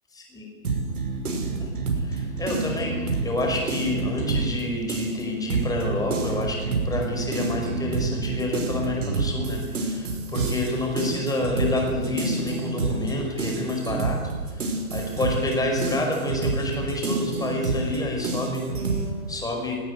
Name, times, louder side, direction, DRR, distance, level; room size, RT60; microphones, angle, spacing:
voice 1, 0.1-0.5 1.5-19.8, left 2 dB, 10° left, 2 dB, 5.5 m, -29 dB
sound 1, 0.6-4.6 4.9-19.1, right 3 dB, 80° right, 5.8 m, -28 dB
19.5 x 17.0 x 9.8 m, 1.4 s
hypercardioid pair, 130°, 44 cm